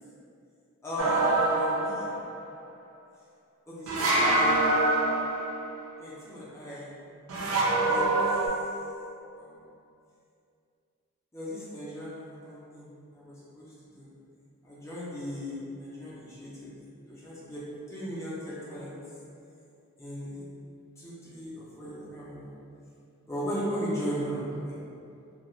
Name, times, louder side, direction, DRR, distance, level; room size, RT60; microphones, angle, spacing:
voice 1, 0.8-2.1 3.7-4.5 6.0-6.9 7.9-8.0 11.3-12.1 12.5-12.8 13.6-13.7 13.9-14.0 14.7-16.7 17.2-17.6 17.9-18.9 20.0-20.4 21.0-22.5 23.3-24.7, equal, 15° left, -8 dB, 0.5 m, -36 dB
sound 1, 1.0-2.3 3.9-5.7 7.3-8.5, right 2 dB, 85° right, 0.4 m, -25 dB
2.3 x 2.2 x 3.0 m, 2.6 s
head